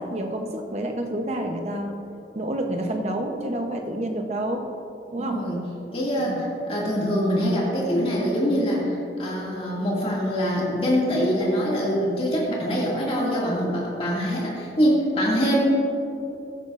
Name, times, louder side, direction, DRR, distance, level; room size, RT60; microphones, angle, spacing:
voice 1, 0.0-2.0 2.3-4.7 5.1-5.4 6.2-6.4, right 1 dB, 35° right, 3 dB, 0.8 m, -29 dB
voice 2, 5.2-5.6 5.9-15.6, equal, 30° left, -5 dB, 2.2 m, -24 dB
15.0 x 10.5 x 2.5 m, 2.8 s
head